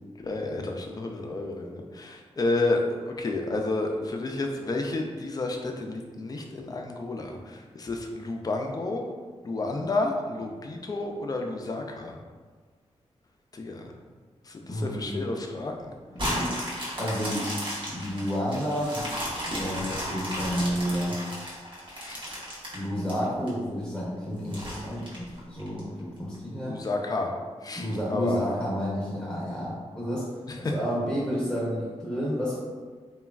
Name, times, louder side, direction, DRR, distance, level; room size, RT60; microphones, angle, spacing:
voice 1, 0.2-9.0 9.4-12.2 13.5-13.9 14.4-15.9 21.9-22.2 26.7-27.3 27.6-28.4 30.5-30.7, left 2 dB, 35° left, 2 dB, 0.3 m, -31 dB
voice 2, 14.6-15.2 16.2-16.5 16.9-17.5 17.9-19.1 19.5-21.2 22.2-26.7 27.8-30.2 30.6-32.6, equal, 5° left, -8 dB, 0.7 m, -30 dB
sound 1, 16.2-23.5 24.0-24.1 24.5-25.8 26.3-26.4, equal, 45° right, 0.9 m, -34 dB
3.1 x 2.3 x 2.3 m, 1.5 s
wide cardioid pair, 100°, 12 cm